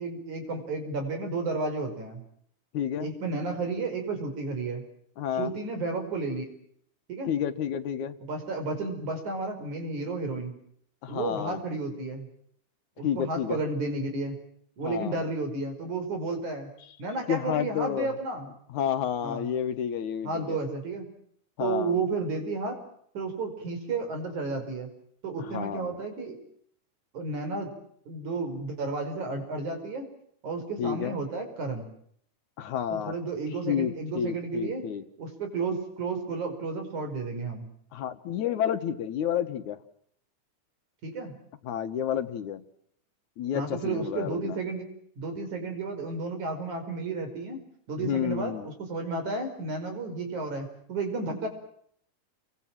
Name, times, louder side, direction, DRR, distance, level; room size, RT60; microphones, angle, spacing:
voice 1, 0.0-2.2 3.0-4.8 5.4-6.5 7.1-7.3 8.3-10.6 11.1-12.3 13.0-14.4 14.8-16.7 17.0-18.5 19.2-19.5 20.2-21.1 21.6-22.8 23.1-24.9 25.2-26.4 27.1-27.7 28.1-30.1 30.4-31.9 32.9-34.9 35.2-37.7 41.0-41.4 43.5-44.9 45.2-47.6 47.9-51.5, right 3 dB, 70° right, 6 dB, 6.5 m, -32 dB
voice 2, 2.7-3.1 5.2-5.5 7.3-8.2 11.0-11.6 13.0-13.6 14.8-15.2 17.3-18.1 18.7-20.6 21.6-22.0 25.5-26.0 30.8-31.2 32.6-33.1 33.7-35.0 37.9-39.8 41.6-42.6 43.4-44.6 48.0-48.7, left 9 dB, 75° left, 11 dB, 2.7 m, -30 dB
29.5 x 23.5 x 7.6 m, 0.69 s
omnidirectional pair, 3.5 m